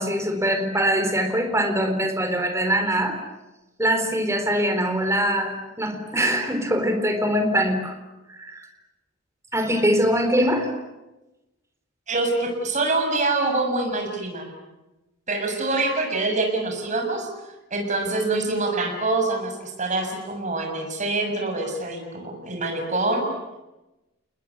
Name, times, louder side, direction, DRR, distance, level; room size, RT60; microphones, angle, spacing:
voice 1, 0.0-3.2 3.8-7.9 8.3-8.7 9.5-10.7, equal, 15° right, 6 dB, 4.1 m, -23 dB
voice 2, 12.1-14.5 15.3-17.3 17.7-23.3, right 2 dB, 40° right, 3 dB, 7.0 m, -25 dB
30.0 x 20.5 x 9.7 m, 1.0 s
head